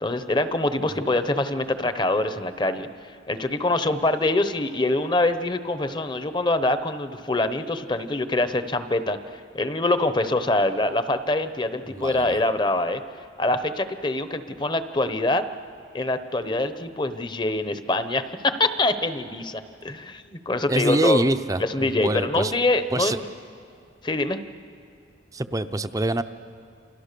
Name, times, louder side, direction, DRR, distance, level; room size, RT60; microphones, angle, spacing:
voice 1, 0.0-2.9 3.3-9.2 9.5-13.0 13.4-15.4 15.9-21.2 21.6-23.2 24.0-24.4, left 2 dB, 25° left, 11 dB, 0.9 m, -24 dB
voice 2, 11.9-12.4 20.7-22.5 22.9-23.2 25.3-26.2, right 1 dB, 20° right, 10 dB, 0.6 m, -25 dB
28.5 x 27.0 x 6.8 m, 2.4 s
head